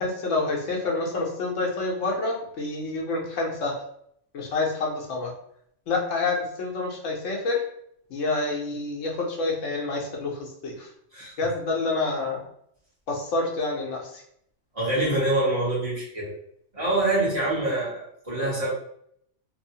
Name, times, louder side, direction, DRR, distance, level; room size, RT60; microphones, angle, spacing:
voice 1, 0.0-3.7 4.3-5.3 5.9-7.6 8.1-10.3 10.6-10.8 11.4-12.4 13.1-14.0, left 3 dB, 90° left, 0 dB, 1.1 m, -27 dB
voice 2, 14.7-16.3 16.7-18.7, right 1 dB, 30° right, -8 dB, 1.0 m, -25 dB
2.9 x 2.0 x 2.7 m, 0.70 s
omnidirectional pair, 1.2 m